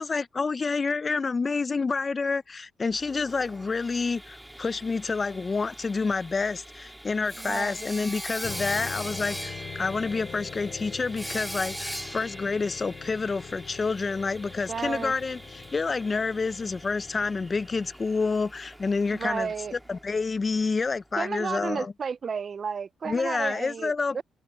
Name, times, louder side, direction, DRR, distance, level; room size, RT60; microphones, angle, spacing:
voice 1, 0.0-21.9 23.0-24.2, left 4 dB, 30° left, 0.4 m, -28 dB
Sawing, 2.9-20.7, equal, 5° right, 2.1 m, -42 dB
voice 2, 7.4-7.8 14.7-15.1 19.1-19.7 21.2-24.2, right 6 dB, 45° right, 0.4 m, -32 dB
sound 1, 8.4-17.9, left 7 dB, 50° left, 7.8 m, -43 dB
open air
cardioid pair, 95°, 0 cm